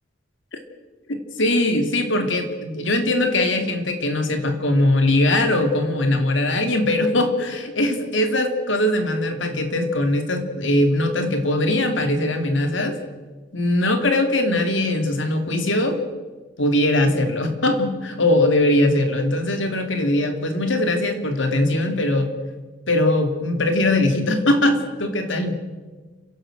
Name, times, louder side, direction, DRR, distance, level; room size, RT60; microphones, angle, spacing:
voice 1, 1.4-13.0 13.5-16.0 16.6-22.3 22.9-25.6, left 1 dB, 85° left, 6 dB, 2.7 m, -21 dB
30.0 x 11.5 x 7.8 m, 1.3 s
head